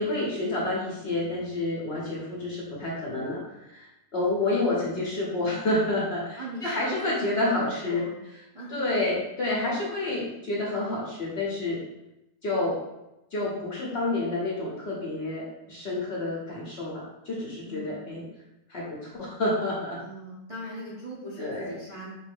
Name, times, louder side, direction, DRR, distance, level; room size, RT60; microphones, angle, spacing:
voice 1, 0.0-3.4 3.7-8.0 8.7-11.8 12.4-12.8 13.3-18.3 18.7-20.0 21.4-21.7, left 2 dB, 55° left, -4 dB, 0.8 m, -29 dB
voice 2, 4.2-4.8 6.4-8.1 8.5-8.9 17.6-18.1 20.0-22.1, equal, 60° right, -7 dB, 0.3 m, -40 dB
3.8 x 2.5 x 3.4 m, 0.91 s
omnidirectional pair, 1.7 m